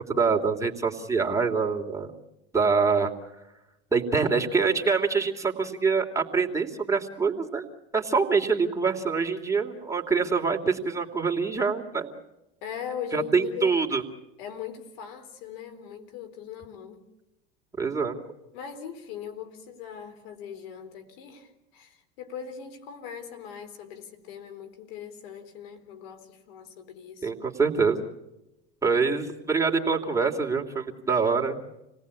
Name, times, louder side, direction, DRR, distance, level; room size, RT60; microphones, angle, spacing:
voice 1, 0.1-2.1 2.5-3.1 3.9-7.7 7.9-12.1 13.1-14.0 17.8-18.1 27.2-28.0 28.8-31.6, right 5 dB, 10° right, 0 dB, 3.1 m, -25 dB
voice 2, 12.6-13.8 14.4-17.0 18.5-27.3, left 8 dB, 75° left, 7 dB, 3.9 m, -40 dB
28.5 x 18.5 x 8.5 m, 0.93 s
hypercardioid pair, 90°, 30 cm